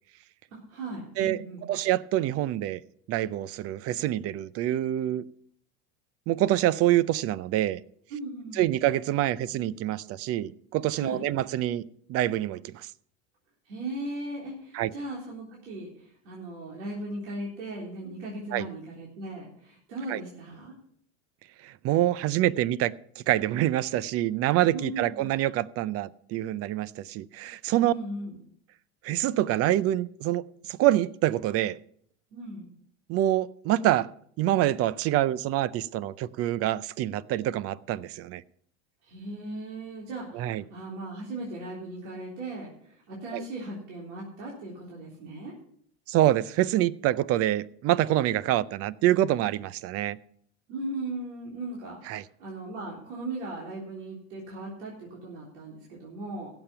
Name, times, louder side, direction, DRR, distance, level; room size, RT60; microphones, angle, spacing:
voice 1, 0.5-1.8 8.1-8.7 11.0-11.2 13.7-20.7 24.7-25.3 27.8-28.4 32.3-32.7 39.0-45.5 50.7-56.5, right 2 dB, 80° right, 3.7 m, -38 dB
voice 2, 1.7-2.8 3.1-5.2 6.3-7.8 8.6-12.9 14.7-14.9 18.5-18.6 20.1-20.2 21.6-27.9 29.0-30.4 30.7-31.8 33.1-34.1 34.4-38.4 40.3-40.6 43.3-43.4 46.1-50.2 52.1-52.2, right 13 dB, 40° right, 0.6 m, -26 dB
16.5 x 7.1 x 5.6 m
supercardioid pair, 110°, 36 cm